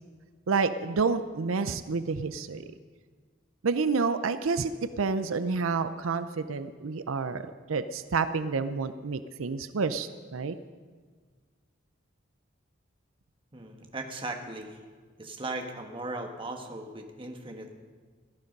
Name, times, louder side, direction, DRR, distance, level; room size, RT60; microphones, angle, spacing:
voice 1, 0.5-2.6 3.6-4.7 5.0-10.6, right 4 dB, 85° right, 12 dB, 0.6 m, -29 dB
voice 2, 13.5-14.8 15.2-17.7, right 2 dB, 25° right, 4 dB, 1.4 m, -38 dB
17.0 x 13.0 x 5.3 m, 1.5 s
head